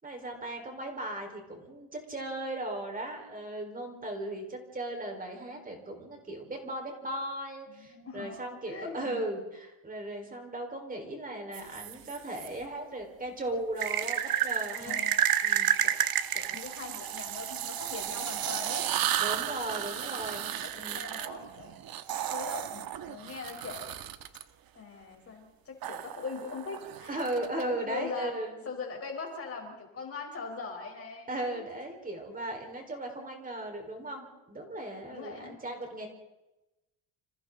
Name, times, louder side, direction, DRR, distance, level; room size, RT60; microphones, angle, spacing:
voice 1, 0.0-15.0 15.4-15.7 19.2-20.5 20.8-21.1 27.1-28.6 31.3-36.1, right 1 dB, 20° right, 2 dB, 4.6 m, -37 dB
voice 2, 7.7-9.2 14.8-15.2 15.8-16.0 16.3-18.9 20.1-20.3 20.6-21.8 22.3-24.0 24.7-27.3 27.6-28.4 28.6-31.6 35.1-35.6, left 4 dB, 30° left, 3 dB, 4.5 m, -41 dB
sound 1, 11.5-12.5 13.8-24.4 25.8-27.6, right 10 dB, 50° right, 1.4 m, -32 dB
30.0 x 28.0 x 4.0 m, 1.0 s
cardioid pair, 170°, 47 cm